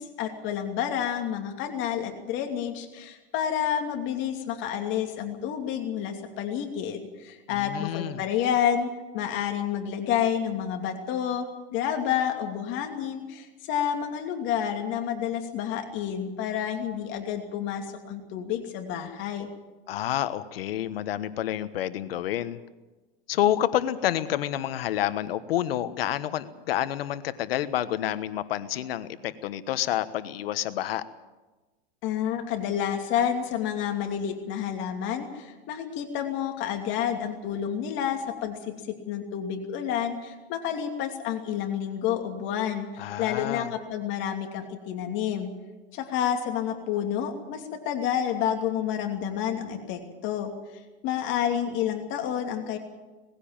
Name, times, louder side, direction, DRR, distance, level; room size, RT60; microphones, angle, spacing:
voice 1, 0.0-19.5 32.0-38.6 38.9-45.5 45.9-50.5 51.0-52.8, left 9 dB, 40° left, 4 dB, 2.7 m, -29 dB
voice 2, 7.6-8.2 19.9-22.6 23.3-31.0 43.0-43.7, left 12 dB, 80° left, 13 dB, 1.3 m, -29 dB
19.5 x 15.5 x 8.9 m, 1.2 s
supercardioid pair, 145°, 29 cm